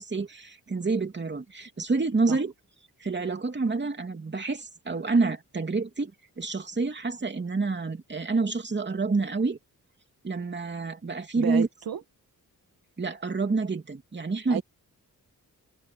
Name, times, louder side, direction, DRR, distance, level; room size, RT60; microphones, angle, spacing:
voice 1, 0.0-2.5 3.0-6.1 6.4-9.6 10.2-11.7 13.0-14.6, right 3 dB, 30° right, 3.0 m, -28 dB
voice 2, 11.4-12.0 14.5-14.6, right 10 dB, 75° right, 1.8 m, -32 dB
wide cardioid pair, 110°, 36 cm